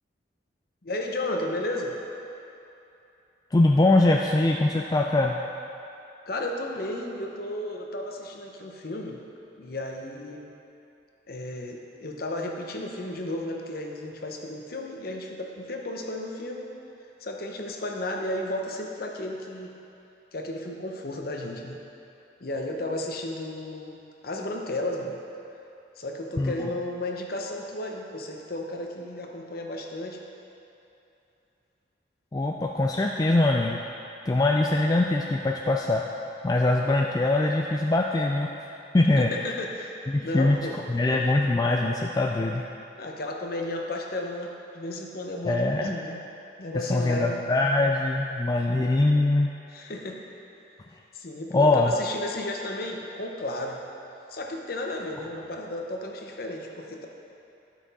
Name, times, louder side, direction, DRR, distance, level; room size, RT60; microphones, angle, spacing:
voice 1, 0.8-2.0 6.3-9.2 9.6-10.5 11.3-16.7 17.2-19.7 20.3-21.8 22.4-25.2 26.0-30.2 39.2-40.8 43.0-46.2 46.6-47.4 49.7-50.2 51.1-53.8 54.3-57.1, left 1 dB, 55° left, 1 dB, 0.8 m, -33 dB
voice 2, 3.5-5.4 26.4-26.7 32.3-33.8 34.3-36.0 36.4-38.5 38.9-39.3 40.1-40.6 40.9-42.6 45.5-46.0 46.7-49.5 51.5-51.9, left 2 dB, 20° left, 0 dB, 0.3 m, -22 dB
11.5 x 6.0 x 4.1 m, 2.8 s
head